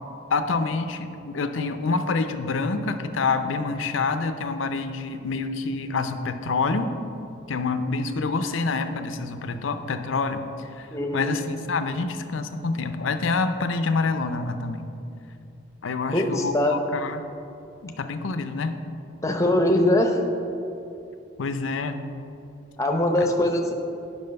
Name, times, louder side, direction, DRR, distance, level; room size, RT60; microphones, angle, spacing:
voice 1, 0.3-6.9 7.5-10.9 11.1-14.9 15.8-17.3 17.8-18.8 21.4-22.0 23.2-23.3, left 4 dB, 75° left, 9 dB, 0.6 m, -27 dB
voice 2, 10.9-11.3 16.1-16.8 19.2-20.2 22.8-23.7, left 1 dB, 15° left, 3 dB, 0.7 m, -22 dB
8.8 x 6.1 x 5.2 m, 2.7 s
head